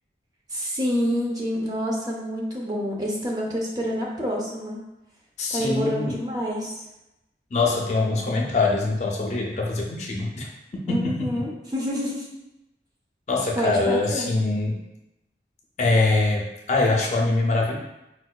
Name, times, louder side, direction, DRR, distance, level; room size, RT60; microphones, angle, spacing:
voice 1, 0.5-4.8 5.5-6.8 10.9-12.3 13.6-14.3, equal, 20° right, -3 dB, 0.5 m, -27 dB
voice 2, 5.4-6.1 7.5-10.5 10.9-11.4 13.3-14.8 15.8-17.8, left 3 dB, 40° left, -1 dB, 0.4 m, -23 dB
4.4 x 2.2 x 2.3 m, 0.93 s
head